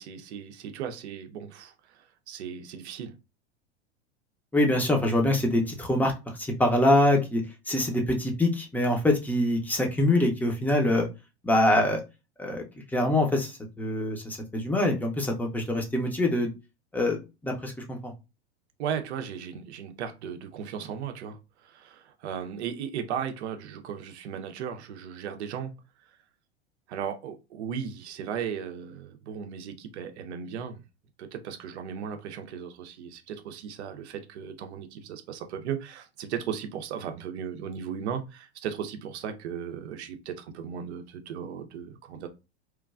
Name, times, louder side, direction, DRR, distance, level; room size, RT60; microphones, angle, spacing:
voice 1, 0.0-3.1 18.8-25.7 26.9-30.8 31.2-42.3, right 8 dB, 75° right, 0.6 m, -36 dB
voice 2, 4.5-11.1 11.4-12.0 12.4-12.6 12.9-16.5 16.9-18.1, left 1 dB, 5° left, 0.7 m, -24 dB
3.1 x 2.2 x 2.4 m
hypercardioid pair, 95°, 34 cm